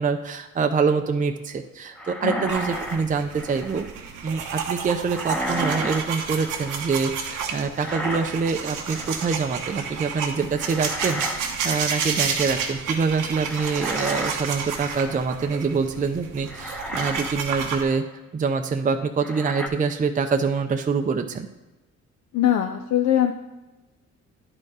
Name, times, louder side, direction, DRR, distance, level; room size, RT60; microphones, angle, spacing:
voice 1, 0.0-3.9 4.2-18.0 18.3-21.5, right 5 dB, 25° right, 5 dB, 0.6 m, -25 dB
sound 1, 2.0-3.9 5.1-6.8 7.8-8.6 8.9-9.4 10.5-11.4 11.7-12.0 13.4-15.3 16.0-16.1 16.5-17.4 17.8-18.0 19.2-19.7, equal, 5° left, 0.9 m, -33 dB
sound 2, 2.5-17.8, right 6 dB, 85° right, 1.1 m, -31 dB
voice 2, 22.3-23.3, left 10 dB, 65° left, 5 dB, 0.6 m, -21 dB
9.9 x 4.6 x 4.8 m, 1.1 s
cardioid pair, 90°, 30 cm